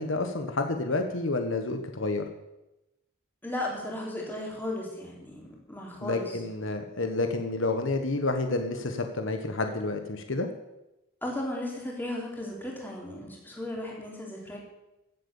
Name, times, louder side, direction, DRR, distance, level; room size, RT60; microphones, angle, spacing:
voice 1, 0.0-2.2 6.0-10.5, left 2 dB, 70° left, 6 dB, 1.3 m, -29 dB
voice 2, 3.4-6.4 11.2-14.6, left 1 dB, 10° left, -2 dB, 3.5 m, -35 dB
16.0 x 7.9 x 7.1 m, 0.94 s
head